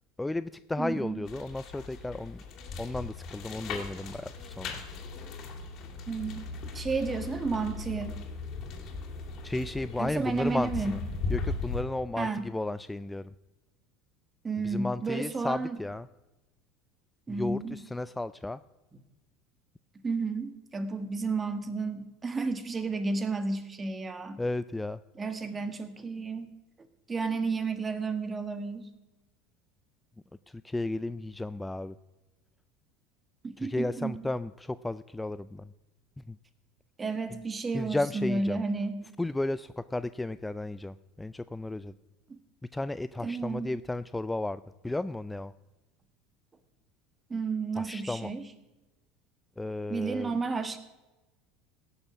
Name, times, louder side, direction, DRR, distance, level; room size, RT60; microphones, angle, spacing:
voice 1, 0.2-2.4 2.8-4.7 9.4-11.0 11.3-13.2 14.6-16.1 17.3-18.6 24.4-25.0 30.5-32.0 33.6-35.7 36.3-36.4 37.7-38.6 39.2-41.9 42.7-45.5 47.8-48.3 49.6-50.3, left 2 dB, 10° left, 15 dB, 0.3 m, -33 dB
voice 2, 0.8-1.2 6.1-6.4 6.7-8.2 10.0-10.9 12.2-12.5 14.4-15.8 17.3-17.8 20.0-24.4 25.1-26.5 27.1-28.9 33.4-34.2 37.0-39.0 42.3-42.4 43.2-43.7 47.3-48.4 49.9-50.8, right 4 dB, 25° right, 10 dB, 1.5 m, -32 dB
sound 1, 1.3-11.8, left 4 dB, 50° left, 2.8 m, -38 dB
17.0 x 7.0 x 6.2 m, 1.1 s
hypercardioid pair, 85°, 0 cm